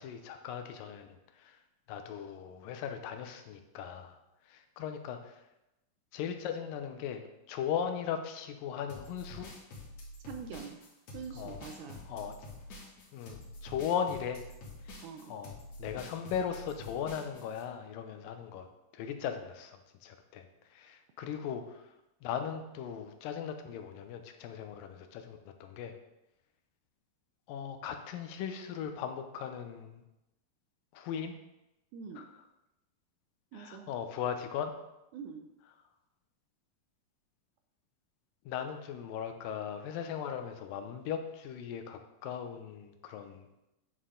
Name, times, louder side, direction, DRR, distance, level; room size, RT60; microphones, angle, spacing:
voice 1, 0.0-1.6 1.9-4.1 4.5-5.4 6.1-7.2 7.5-9.5 11.4-11.6 12.1-12.3 13.1-14.4 15.3-18.7 18.9-20.5 20.7-21.8 22.2-25.9 27.5-30.0 30.9-31.4 32.2-32.3 33.5-34.7 38.5-43.5, left 8 dB, 80° left, 6 dB, 2.4 m, -38 dB
sound 1, 8.9-17.6, left 2 dB, 65° left, 2.9 m, -47 dB
voice 2, 10.3-10.8 11.1-12.1 15.0-15.4 31.9-32.3 33.5-33.9 35.1-35.5, right 6 dB, 80° right, 5 dB, 1.9 m, -44 dB
9.2 x 6.5 x 3.8 m, 0.93 s
omnidirectional pair, 3.9 m